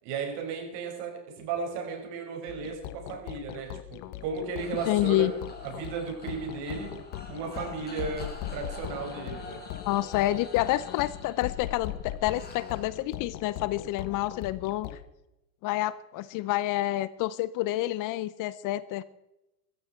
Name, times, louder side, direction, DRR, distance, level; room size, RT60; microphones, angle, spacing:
voice 1, 0.0-2.8 3.1-5.3 5.8-6.9 7.3-9.6, right 5 dB, 55° right, 2 dB, 5.7 m, -35 dB
sound 1, 2.5-15.0, left 13 dB, 65° left, 1.4 m, -40 dB
sound 2, 4.6-12.9, left 3 dB, 20° left, 3.7 m, -47 dB
voice 2, 4.9-5.3 9.8-15.0 15.6-19.0, left 16 dB, 40° left, 17 dB, 0.7 m, -28 dB
15.5 x 14.5 x 4.5 m, 0.90 s
hypercardioid pair, 105°, 48 cm